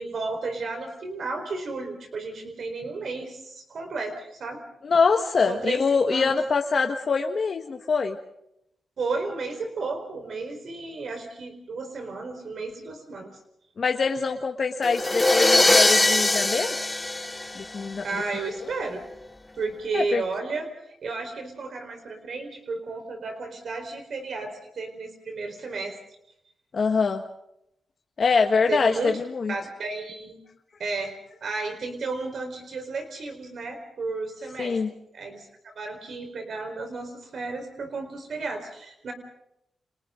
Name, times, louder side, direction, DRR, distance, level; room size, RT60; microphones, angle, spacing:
voice 1, 0.0-4.6 5.5-6.3 9.0-13.3 18.0-19.0 19.6-20.7 21.0-26.0 28.7-29.2 29.5-30.4 30.8-31.1 31.4-34.8 35.1-39.1, right 3 dB, 65° right, 5 dB, 4.3 m, -33 dB
voice 2, 4.8-8.2 13.8-16.8 17.5-18.0 18.6-18.7 19.9-20.2 26.7-27.2 28.2-29.5 34.6-34.9, left 5 dB, 55° left, 4 dB, 1.5 m, -24 dB
sound 1, 14.8-18.1, left 2 dB, 20° left, 1.1 m, -21 dB
30.0 x 27.0 x 3.8 m, 0.80 s
cardioid pair, 80°, 0 cm